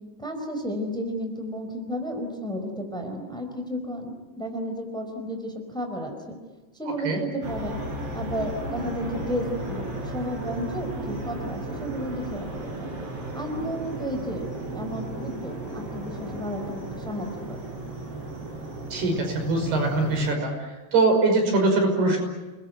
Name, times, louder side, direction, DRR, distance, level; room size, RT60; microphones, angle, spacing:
voice 1, 0.2-6.4 6.7-7.8 8.1-13.0 13.3-14.4 14.7-17.6, equal, ahead, 4 dB, 4.1 m, -33 dB
sound 1, 7.4-20.3, right 2 dB, 35° right, 5.6 m, -34 dB
voice 2, 18.9-20.5 20.9-22.2, right 2 dB, 75° right, 3 dB, 7.8 m, -22 dB
29.5 x 21.0 x 9.4 m, 1.2 s
omnidirectional pair, 4.6 m